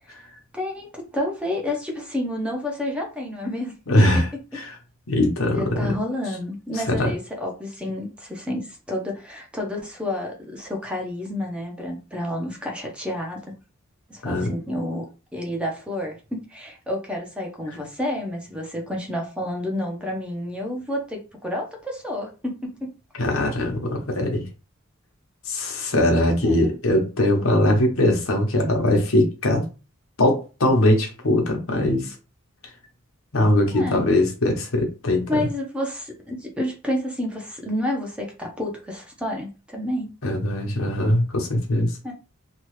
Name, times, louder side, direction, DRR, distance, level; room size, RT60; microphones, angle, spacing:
voice 1, 0.5-3.7 5.5-13.5 14.1-15.1 15.3-22.9 26.4-26.7 33.7-34.0 35.3-40.1 42.0-42.1, left 1 dB, 5° right, 0.7 m, -30 dB
voice 2, 3.9-4.2 4.5-4.8 5.1-5.9 6.7-7.1 14.2-14.5 23.2-24.4 25.5-29.6 30.2-32.1 33.3-35.5 40.2-42.0, left 1 dB, 75° left, 1.0 m, -21 dB
2.9 x 2.4 x 3.1 m
head